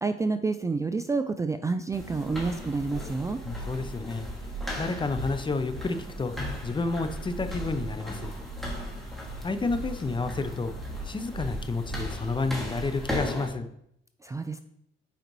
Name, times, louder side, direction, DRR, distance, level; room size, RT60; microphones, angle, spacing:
voice 1, 0.0-3.4 14.2-14.6, right 3 dB, 15° right, 9 dB, 0.3 m, -29 dB
sound 1, 1.9-13.5, equal, ahead, 2.0 m, -36 dB
voice 2, 3.4-4.3 4.8-6.3 6.6-8.3 9.4-10.7 11.0-13.7, left 3 dB, 25° left, 9 dB, 0.6 m, -30 dB
7.9 x 5.0 x 3.1 m, 0.74 s
cardioid pair, 90°, 20 cm